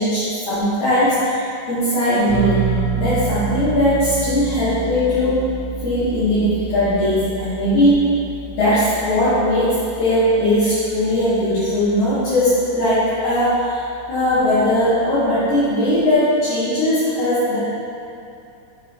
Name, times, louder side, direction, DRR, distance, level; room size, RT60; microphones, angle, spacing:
voice 1, 0.0-1.4 1.7-2.7 3.0-5.4 5.8-8.1 8.5-13.8 14.1-17.6, left 1 dB, 60° left, -15 dB, 3.9 m, -19 dB
sound 1, 2.3-15.7, right 4 dB, 85° left, 1.5 m, -30 dB
8.3 x 6.6 x 4.3 m, 2.6 s
omnidirectional pair, 5.4 m